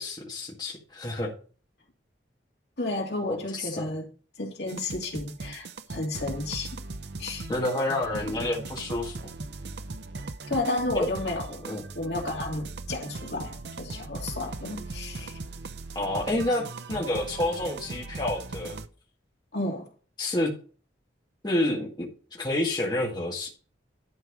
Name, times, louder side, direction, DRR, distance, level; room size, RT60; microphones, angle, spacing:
voice 1, 0.0-1.3 3.3-3.9 7.5-9.2 10.9-11.1 11.6-11.8 16.0-18.8 20.2-20.5 21.4-23.5, left 1 dB, 25° left, -2 dB, 1.9 m, -29 dB
voice 2, 2.8-4.1 4.4-6.8 7.2-7.5 10.5-11.6 11.9-15.3 19.5-19.9, left 2 dB, 65° left, 0 dB, 2.8 m, -32 dB
sound 1, 4.7-18.9, right 3 dB, 65° right, 0.7 m, -39 dB
11.5 x 4.6 x 6.1 m, 0.38 s
head